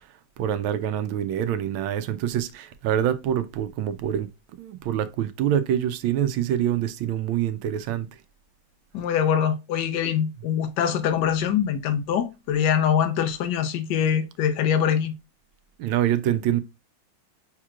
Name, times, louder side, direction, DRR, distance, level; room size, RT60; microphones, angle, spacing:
voice 1, 0.4-4.3 4.6-8.1 15.8-16.6, right 10 dB, 90° right, 1.4 m, -25 dB
voice 2, 8.9-15.1, left 8 dB, 65° left, 1.3 m, -23 dB
6.5 x 3.0 x 2.3 m
omnidirectional pair, 2.1 m